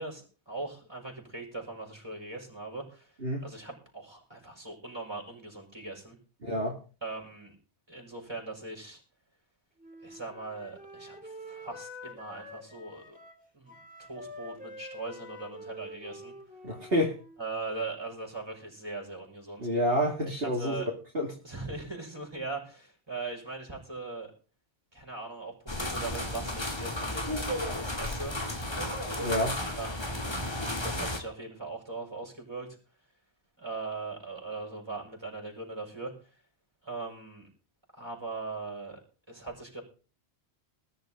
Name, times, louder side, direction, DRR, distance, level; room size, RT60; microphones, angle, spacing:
voice 1, 0.0-6.2 7.0-7.5 7.9-9.0 10.0-13.2 13.5-13.8 14.1-16.3 17.4-19.7 20.5-20.9 21.4-24.3 24.9-28.4 29.7-30.4 30.8-32.7 33.6-36.1 36.8-37.5 37.9-39.0 39.3-39.8, right 3 dB, 20° right, 0 dB, 6.1 m, -40 dB
voice 2, 6.4-6.8 16.6-17.2 19.6-21.3 29.2-29.6, equal, 55° right, -2 dB, 2.7 m, -28 dB
Wind instrument woodwind instrument, 9.8-17.5, left 1 dB, 5° right, 3.6 m, -47 dB
sound 1, 25.7-31.2, left 1 dB, 25° left, 1.9 m, -33 dB
20.0 x 11.0 x 3.9 m, 0.37 s
omnidirectional pair, 1.2 m